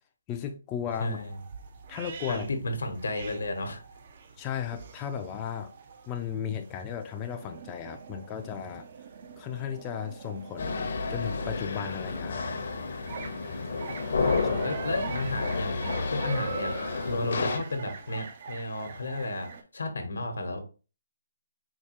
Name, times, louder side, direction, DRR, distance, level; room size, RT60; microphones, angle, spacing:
voice 1, 0.3-1.2 1.9-2.5 4.4-5.7 6.1-8.9 9.4-12.6 14.6-14.8, left 8 dB, 20° left, 0.4 m, -35 dB
sound 1, 0.9-19.6, right 6 dB, 45° right, 0.5 m, -43 dB
voice 2, 1.0-1.4 2.3-3.8 14.3-20.6, left 2 dB, 85° left, 1.0 m, -33 dB
sound 2, 10.6-17.6, left 4 dB, 60° left, 0.7 m, -31 dB
4.6 x 2.3 x 2.9 m
hypercardioid pair, 160°, 0 cm